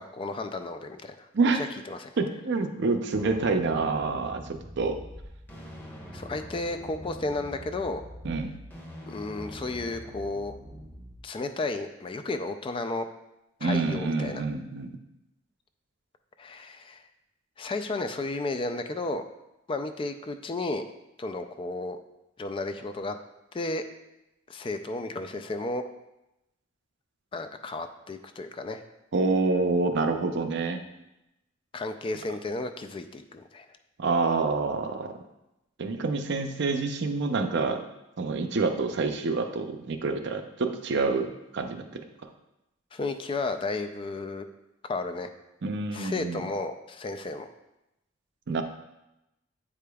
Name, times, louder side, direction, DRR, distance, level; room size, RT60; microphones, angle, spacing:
voice 1, 0.0-1.3 1.5-2.2 6.1-8.0 9.1-10.5 11.2-13.1 13.6-14.4 16.4-17.0 17.6-19.2 19.7-20.9 21.2-22.0 22.4-23.2 23.5-23.8 24.5-25.8 27.3-28.8 31.7-33.7 42.9-44.4 44.8-45.3 45.9-47.5, left 2 dB, 25° left, 8 dB, 0.3 m, -33 dB
voice 2, 1.3-1.7 2.2-5.0 8.2-8.6 13.6-14.9 29.1-30.8 34.0-35.2 35.8-37.8 38.2-42.0 45.6-46.4 48.5-48.6, right 3 dB, 60° right, 6 dB, 0.5 m, -27 dB
sound 1, 3.1-11.2, equal, 10° left, 1.0 m, -44 dB
8.3 x 5.0 x 2.3 m, 0.91 s
head